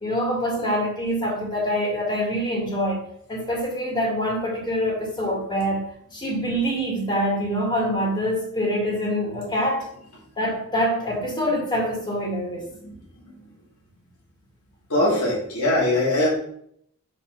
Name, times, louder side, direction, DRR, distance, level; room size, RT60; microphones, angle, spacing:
voice 1, 0.0-5.8 6.1-9.8 10.4-12.7, equal, 20° left, -2 dB, 2.0 m, -25 dB
voice 2, 14.9-16.3, left 1 dB, 80° left, -5 dB, 2.9 m, -21 dB
5.2 x 4.8 x 5.2 m, 0.68 s
head